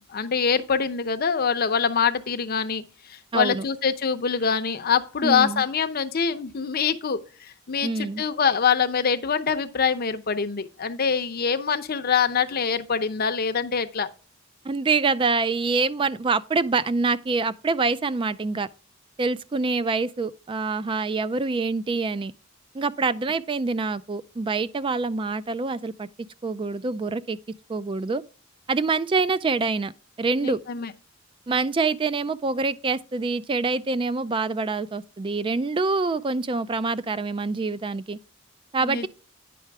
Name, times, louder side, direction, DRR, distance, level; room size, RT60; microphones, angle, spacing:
voice 1, 0.0-2.8 3.1-14.1 30.4-30.9 38.8-39.1, left 6 dB, 50° left, 0.6 m, -24 dB
voice 2, 3.3-3.6 5.2-5.6 7.8-8.2 14.6-18.7 19.2-22.3 22.7-26.1 26.4-27.4 27.7-28.2 28.7-29.9 30.2-30.6 31.5-38.2 38.7-39.1, right 4 dB, 25° right, 0.3 m, -25 dB
9.3 x 5.6 x 3.4 m
head